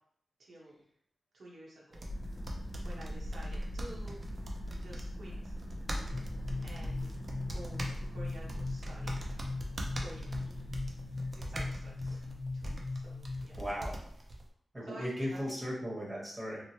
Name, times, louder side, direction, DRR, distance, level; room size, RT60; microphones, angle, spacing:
voice 1, 0.4-0.8 1.3-2.1 2.8-4.2 4.8-5.6 6.6-7.2 7.4-9.4 10.0-10.6 11.3-12.2 12.5-12.6 12.9-13.6 14.8-15.4, right 1 dB, 80° right, -5 dB, 0.9 m, -50 dB
sound 1, 1.9-14.5, right 1 dB, 45° right, 0.5 m, -43 dB
sound 2, 2.1-12.0, equal, 70° left, 0.6 m, -42 dB
sound 3, 6.1-13.7, left 3 dB, 20° left, 0.8 m, -40 dB
voice 2, 13.6-14.0 14.7-16.7, equal, 20° right, -4 dB, 1.0 m, -37 dB
3.0 x 2.1 x 2.8 m, 0.66 s
cardioid pair, 75°, 0 cm